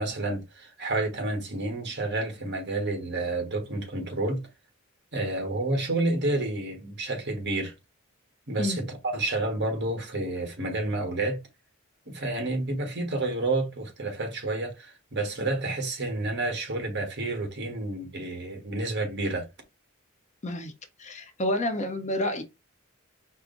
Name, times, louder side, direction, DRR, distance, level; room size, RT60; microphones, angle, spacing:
voice 1, 0.0-4.5 5.1-7.7 8.5-11.4 12.1-19.5, right 2 dB, 55° right, 1.4 m, -30 dB
voice 2, 20.4-20.7 21.0-22.4, left 1 dB, 35° left, 0.7 m, -29 dB
4.6 x 2.0 x 3.9 m
head